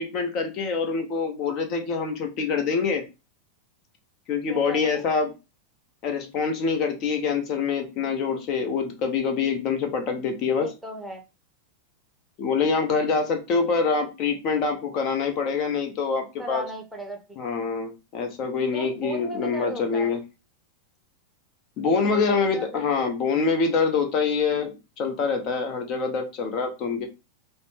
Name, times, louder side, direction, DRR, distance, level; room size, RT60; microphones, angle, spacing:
voice 1, 0.0-3.0 4.3-5.3 6.0-10.7 12.4-16.6 17.4-20.2 21.8-24.7 25.0-27.1, left 5 dB, 40° left, 5 dB, 0.9 m, -25 dB
voice 2, 4.5-5.1 10.6-11.2 16.4-17.2 18.7-20.1 21.8-23.1, right 2 dB, 5° right, 3 dB, 0.9 m, -37 dB
5.2 x 2.1 x 3.2 m, 0.28 s
figure-of-eight pair, 90°, 0 cm